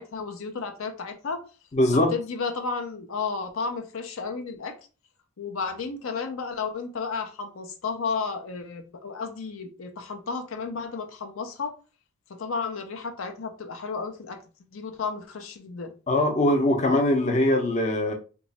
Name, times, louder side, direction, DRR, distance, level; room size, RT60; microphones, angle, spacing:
voice 1, 0.0-1.4 1.9-4.8 5.4-11.7 12.3-14.4 14.7-15.9, left 5 dB, 80° left, 5 dB, 0.6 m, -32 dB
voice 2, 1.7-2.1 16.1-18.1, left 1 dB, 35° left, 3 dB, 0.6 m, -22 dB
3.0 x 2.3 x 4.0 m, 0.34 s
head